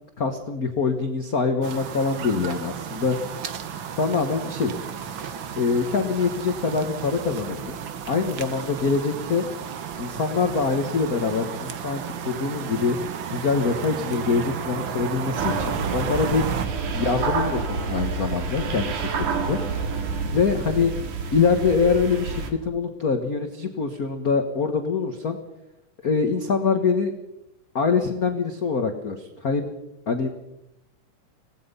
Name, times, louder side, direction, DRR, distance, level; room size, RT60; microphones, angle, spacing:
voice 1, 0.2-3.2 4.0-4.8 5.6-7.8 8.1-9.4 10.0-13.0 13.3-16.4 16.9-19.6 20.3-20.9 21.3-25.4 26.0-27.1 27.7-29.7 30.1-30.3, left 5 dB, 45° left, 5 dB, 1.2 m, -24 dB
sound 1, 1.6-16.7, right 7 dB, 60° right, 1.4 m, -33 dB
sound 2, 15.4-22.5, right 5 dB, 75° right, 3.5 m, -28 dB
26.0 x 18.5 x 5.6 m, 0.86 s
omnidirectional pair, 3.6 m